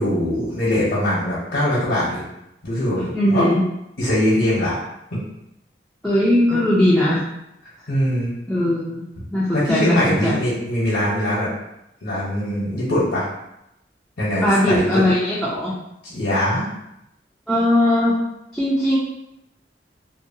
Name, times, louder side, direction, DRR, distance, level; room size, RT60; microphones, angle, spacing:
voice 1, 0.0-2.3 2.6-3.5 4.0-4.8 5.1-5.2 6.5-6.6 7.9-8.3 9.5-11.5 12.0-13.2 14.2-15.1 16.1-16.7, left 1 dB, 75° left, -8 dB, 0.9 m, -22 dB
voice 2, 3.1-3.6 6.0-7.2 8.5-9.0 9.3-10.3 14.4-15.7 17.5-18.2 18.5-19.0, left 1 dB, ahead, -10 dB, 0.4 m, -19 dB
2.7 x 2.2 x 2.6 m, 0.84 s
head